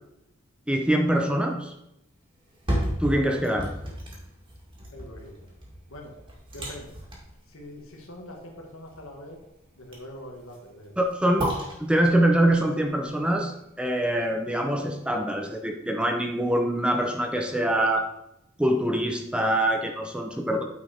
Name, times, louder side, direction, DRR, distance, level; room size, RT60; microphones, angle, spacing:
voice 1, 0.7-1.7 3.0-3.7 11.0-11.5 11.8-18.1 18.6-20.6, right 1 dB, 5° right, 3 dB, 0.7 m, -24 dB
sound 1, 2.4-14.4 14.9-15.0, equal, 25° right, 2.1 m, -35 dB
voice 2, 4.9-5.5 5.9-6.2 6.5-7.0 7.5-9.4 9.8-11.0, left 1 dB, 80° left, 1 dB, 1.8 m, -43 dB
9.1 x 5.3 x 4.3 m, 0.85 s
head